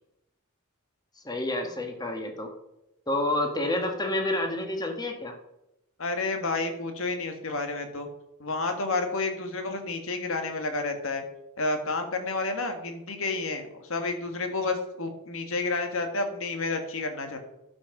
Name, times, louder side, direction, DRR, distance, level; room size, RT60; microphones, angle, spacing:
voice 1, 1.2-2.5 3.1-5.3, left 1 dB, 20° left, 4 dB, 1.4 m, -29 dB
voice 2, 6.0-8.1 8.4-11.2 11.6-17.4, left 3 dB, 65° left, 6 dB, 1.6 m, -30 dB
11.5 x 5.6 x 5.9 m, 0.89 s
head